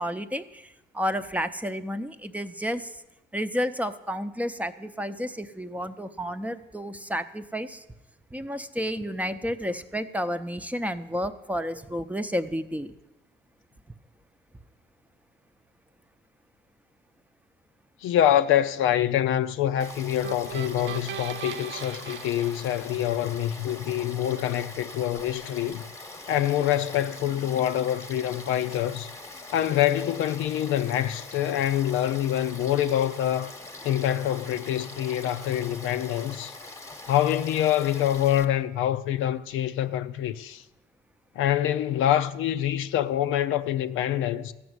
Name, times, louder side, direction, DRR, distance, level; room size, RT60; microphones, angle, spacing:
voice 1, 0.0-3.0 3.3-7.8 8.3-12.9, equal, 5° right, 0.7 m, -31 dB
voice 2, 18.0-25.8 26.3-29.1 29.5-33.5 33.8-36.6 37.1-40.6 41.4-44.5, left 11 dB, 90° left, 0.6 m, -25 dB
Frog / Stream, 19.8-38.4, left 2 dB, 15° left, 1.1 m, -43 dB
sound 1, 20.2-23.5, right 11 dB, 70° right, 0.4 m, -39 dB
14.0 x 6.1 x 9.5 m
cardioid pair, 90°, 20 cm